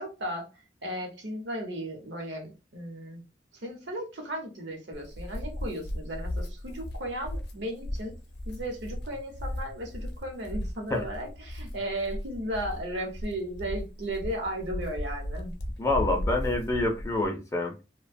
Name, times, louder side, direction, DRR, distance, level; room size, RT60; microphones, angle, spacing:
voice 1, 0.0-3.2 3.5-8.1 8.5-15.5, right 1 dB, 75° right, 0.8 m, -35 dB
sound 1, 4.9-17.3, left 1 dB, 60° left, 0.6 m, -36 dB
voice 2, 15.8-17.8, left 2 dB, 15° left, 0.4 m, -27 dB
2.7 x 2.1 x 2.5 m
head